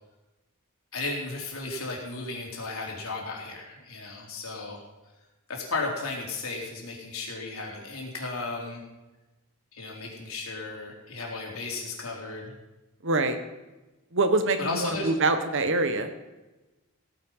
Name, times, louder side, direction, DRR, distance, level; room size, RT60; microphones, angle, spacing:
voice 1, 0.9-4.8 5.5-8.8 9.7-12.5 14.6-15.1, left 3 dB, 70° left, -1 dB, 4.0 m, -34 dB
voice 2, 13.0-13.4 14.1-16.1, right 2 dB, 60° right, 9 dB, 1.5 m, -24 dB
16.0 x 9.8 x 5.7 m, 1.1 s
head